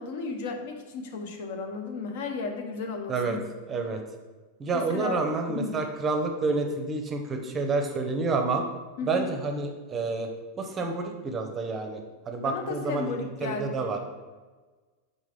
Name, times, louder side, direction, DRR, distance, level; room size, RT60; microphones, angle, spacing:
voice 1, 0.0-3.5 4.7-5.2 5.5-5.7 9.0-9.3 12.4-14.0, left 4 dB, 60° left, 4 dB, 0.5 m, -34 dB
voice 2, 3.7-4.0 4.6-8.6 9.1-10.3 10.6-14.0, right 3 dB, 25° right, 4 dB, 0.6 m, -29 dB
3.9 x 3.6 x 3.2 m, 1.3 s
figure-of-eight pair, 90°, 0 cm